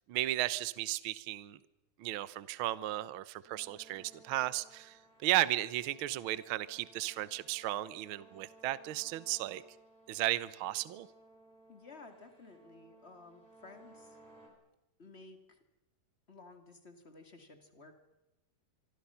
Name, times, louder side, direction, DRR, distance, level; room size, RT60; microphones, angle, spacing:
voice 1, 0.1-1.6 2.0-9.6 10.1-11.1, right 15 dB, 85° right, 16 dB, 1.1 m, -34 dB
sound 1, 3.4-14.5, right 2 dB, 55° right, 5.9 m, -61 dB
voice 2, 11.7-14.2 15.0-15.6 16.3-18.0, left 3 dB, 25° left, 6 dB, 2.1 m, -54 dB
25.5 x 24.5 x 5.7 m, 0.96 s
omnidirectional pair, 3.6 m